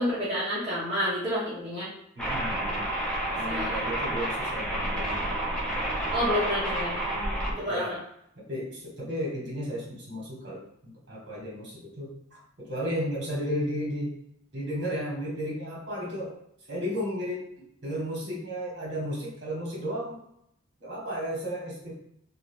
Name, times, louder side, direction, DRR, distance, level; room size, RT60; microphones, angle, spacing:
voice 1, 0.0-1.9 3.5-3.8 6.1-7.0 7.6-8.0, equal, 25° right, -10 dB, 0.8 m, -29 dB
voice 2, 2.1-2.9 3.3-5.6 6.9-8.0 8.4-14.2 14.5-16.4 16.7-17.5 17.8-20.2 20.8-21.9, equal, 60° right, -4 dB, 1.2 m, -34 dB
sound 1, 2.2-7.5, right 1 dB, 5° left, 0.6 m, -30 dB
2.6 x 2.4 x 3.4 m, 0.74 s
head